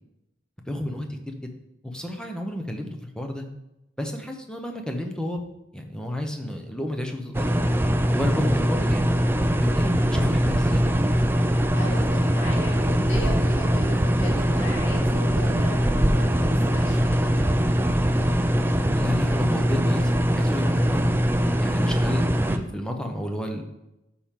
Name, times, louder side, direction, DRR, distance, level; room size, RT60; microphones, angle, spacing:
voice 1, 0.7-1.5 1.8-3.5 4.0-5.4 5.7-7.5 8.1-9.1 9.6-10.8 18.9-21.0 21.6-23.6, left 1 dB, 5° left, 3 dB, 0.8 m, -31 dB
sound 1, 7.3-22.6, equal, 10° right, 0.4 m, -22 dB
voice 2, 11.7-17.5, equal, 80° left, -3 dB, 2.5 m, -36 dB
12.0 x 4.3 x 3.7 m, 0.91 s
head